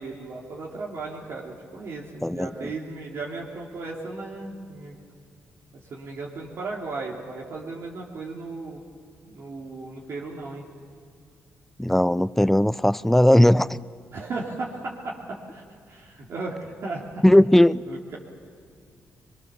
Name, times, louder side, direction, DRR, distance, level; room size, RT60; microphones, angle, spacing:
voice 1, 0.0-5.0 5.9-8.8 9.2-10.7 14.1-17.2 17.9-18.2, right 3 dB, 65° right, -4 dB, 3.1 m, -36 dB
voice 2, 11.8-13.8 17.2-17.8, left 1 dB, 5° left, 18 dB, 0.5 m, -18 dB
23.0 x 22.5 x 7.2 m, 2.2 s
cardioid pair, 75°, 5 cm